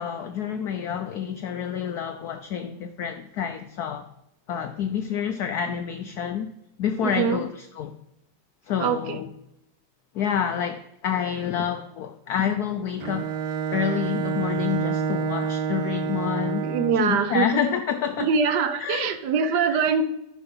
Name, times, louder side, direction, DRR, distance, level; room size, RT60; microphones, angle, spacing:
voice 1, 0.0-4.1 4.5-6.5 6.8-8.0 8.7-9.3 10.1-13.3 13.7-16.7 16.9-18.3 18.8-19.1 19.7-19.9, left 8 dB, 80° left, 0.8 m, -28 dB
voice 2, 7.0-7.4 8.8-9.2 16.6-17.7 18.2-20.0, right 6 dB, 65° right, 1.2 m, -23 dB
Bowed string instrument, 13.0-17.2, right 6 dB, 90° right, 1.6 m, -28 dB
10.5 x 5.3 x 5.4 m
omnidirectional pair, 2.3 m